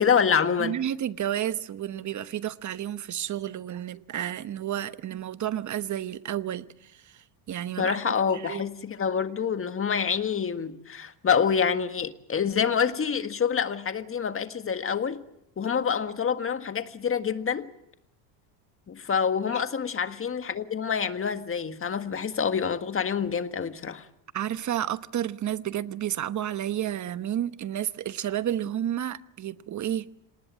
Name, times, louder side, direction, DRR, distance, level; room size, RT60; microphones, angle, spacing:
voice 1, 0.0-0.8 7.8-15.2 15.6-17.7 18.9-24.1, left 7 dB, 25° left, 1.7 m, -27 dB
voice 2, 0.6-8.0 8.3-8.6 19.5-19.6 24.3-30.1, right 11 dB, 35° right, 1.0 m, -31 dB
26.5 x 19.5 x 7.6 m
supercardioid pair, 105°, 49 cm